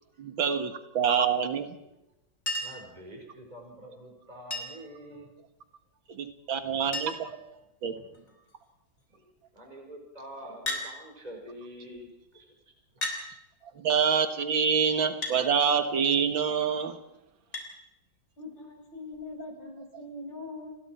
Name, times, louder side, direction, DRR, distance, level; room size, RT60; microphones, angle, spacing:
voice 1, 0.2-1.7 6.1-7.9 13.8-17.0, right 7 dB, 85° right, 7 dB, 2.4 m, -26 dB
Chink clink, 2.5-2.9 4.5-4.9 6.3-6.4 6.6-6.7 6.9-7.4 8.1-8.5 10.7-10.9 12.0-12.1 13.0-13.2 15.2-15.4 17.5-17.7 19.1-19.2, left 1 dB, 40° left, 4.1 m, -34 dB
voice 2, 2.6-5.3 6.7-6.9 7.9-8.6 9.1-12.5 13.0-13.1, equal, 20° right, 1 dB, 4.9 m, -47 dB
voice 3, 18.4-20.8, left 2 dB, 70° left, 2 dB, 6.7 m, -42 dB
30.0 x 21.5 x 4.6 m, 0.90 s
omnidirectional pair, 2.1 m